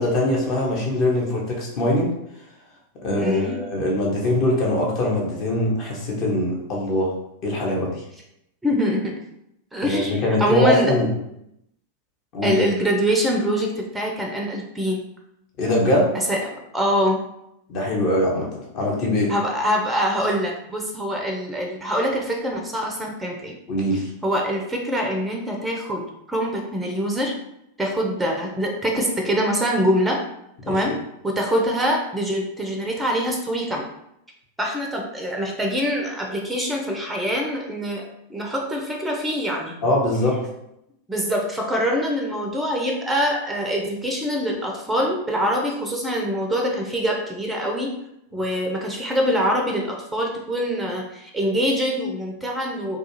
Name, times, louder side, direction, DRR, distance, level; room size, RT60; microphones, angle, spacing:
voice 1, 0.0-2.1 3.0-7.1 7.4-8.0 9.8-11.1 12.3-12.6 15.6-16.2 17.7-19.3 23.7-24.1 30.7-30.8 39.8-40.4, left 1 dB, 40° left, -2 dB, 0.8 m, -22 dB
voice 2, 3.2-3.6 8.6-9.1 9.7-11.0 12.4-15.0 16.3-17.2 19.3-23.5 24.2-27.3 27.8-30.2 30.7-31.0 31.2-33.9 34.6-39.7 41.1-47.9 48.3-53.0, equal, 5° right, 0 dB, 0.5 m, -24 dB
2.4 x 2.3 x 2.9 m, 0.80 s
figure-of-eight pair, 90°, 0 cm